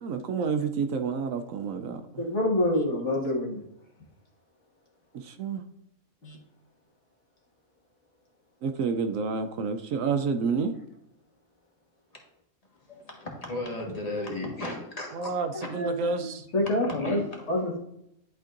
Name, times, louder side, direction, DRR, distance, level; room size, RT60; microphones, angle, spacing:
voice 1, 0.0-2.2 5.1-5.6 8.6-10.8 15.1-16.4, right 5 dB, 75° right, 8 dB, 1.0 m, -29 dB
voice 2, 2.2-3.6 6.2-6.4 15.7-16.0 16.5-17.2 17.5-17.8, left 1 dB, 55° left, -2 dB, 1.9 m, -26 dB
voice 3, 12.9-15.3 17.0-17.5, left 2 dB, 25° left, 0 dB, 1.5 m, -35 dB
11.0 x 4.5 x 2.5 m, 0.79 s
omnidirectional pair, 1.5 m